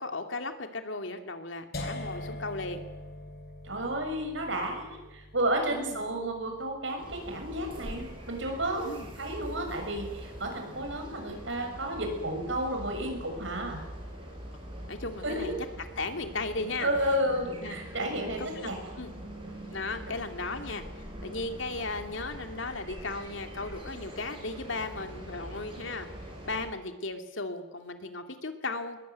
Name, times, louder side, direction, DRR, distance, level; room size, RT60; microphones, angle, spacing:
voice 1, 0.0-2.8 5.7-6.0 8.8-9.1 14.9-15.5 16.0-16.9 17.6-17.8 18.5-18.7 19.0-19.1 19.7-26.1 26.5-29.0, left 3 dB, 80° left, 6 dB, 2.6 m, -36 dB
sound 1, 1.7-7.7, left 1 dB, 55° left, 3.6 m, -43 dB
voice 2, 3.6-8.9 9.2-13.8 15.2-15.5 16.8-18.8, right 1 dB, 80° right, 3 dB, 6.9 m, -32 dB
sound 2, 7.0-26.7, equal, 25° right, 7.5 m, -43 dB
21.5 x 20.5 x 9.4 m, 1.0 s
head